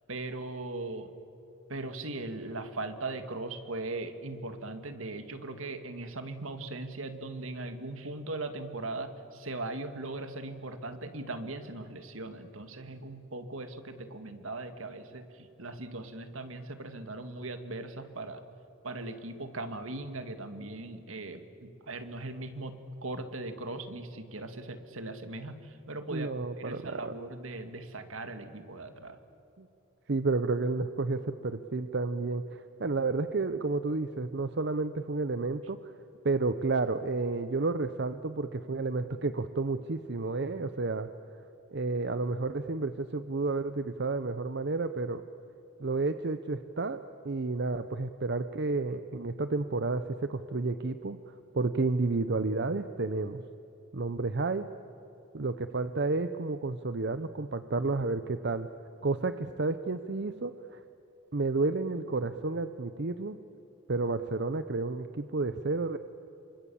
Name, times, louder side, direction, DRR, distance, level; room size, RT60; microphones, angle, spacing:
voice 1, 0.1-1.1 1.7-18.4 18.8-26.3 26.6-29.2, right 2 dB, 75° right, 8 dB, 2.1 m, -39 dB
voice 2, 26.1-27.1 29.6-29.7 30.1-35.9 36.2-41.1 41.7-45.2 45.8-53.4 53.9-54.7 55.3-58.7 59.0-60.8 61.3-63.4 63.9-66.0, right 3 dB, 55° right, 10 dB, 0.7 m, -31 dB
28.5 x 25.5 x 7.1 m, 2.8 s
head